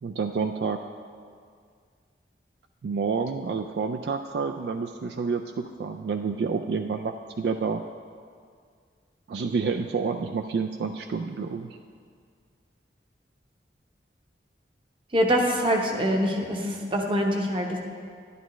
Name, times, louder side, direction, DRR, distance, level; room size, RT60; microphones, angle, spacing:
voice 1, 0.0-0.8 2.8-7.8 9.3-11.8, right 5 dB, 60° right, 6 dB, 0.3 m, -29 dB
voice 2, 15.1-17.8, equal, 30° right, 2 dB, 0.9 m, -24 dB
11.0 x 11.0 x 3.1 m, 2.1 s
head